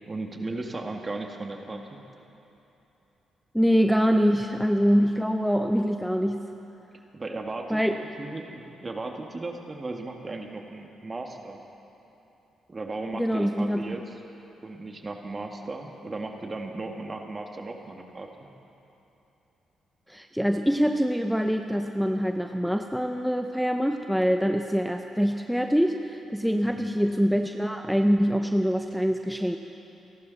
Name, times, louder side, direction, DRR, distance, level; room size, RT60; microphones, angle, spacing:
voice 1, 0.1-2.0 7.1-11.6 12.7-14.2 14.6-18.3 26.6-26.9, right 2 dB, 35° right, 3 dB, 1.9 m, -36 dB
voice 2, 3.5-6.4 7.7-8.0 13.1-13.8 20.1-29.6, equal, ahead, 5 dB, 0.8 m, -24 dB
28.0 x 12.0 x 4.1 m, 3.0 s
supercardioid pair, 55°, 0 cm